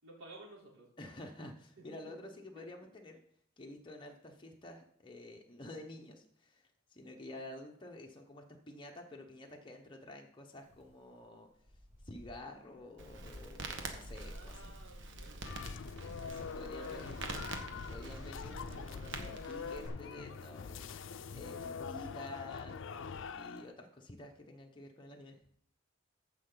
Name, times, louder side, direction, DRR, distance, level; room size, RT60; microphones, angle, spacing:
voice 1, 0.0-0.9 2.6-2.7 7.3-7.4 14.2-15.5 16.7-17.8 21.7-21.9, right 2 dB, 90° right, -3 dB, 3.6 m, -55 dB
voice 2, 1.0-3.2 3.6-11.5 12.0-14.6 16.0-17.2 17.9-22.8 23.3-25.4, left 1 dB, 25° left, 1 dB, 1.0 m, -50 dB
Wind, 10.6-20.5, left 1 dB, 35° right, 1.7 m, -63 dB
Crackle, 13.0-19.9, right 2 dB, 65° right, 1.3 m, -45 dB
sound 1, 15.4-23.7, left 5 dB, 65° left, 0.5 m, -44 dB
14.5 x 5.6 x 3.9 m, 0.65 s
head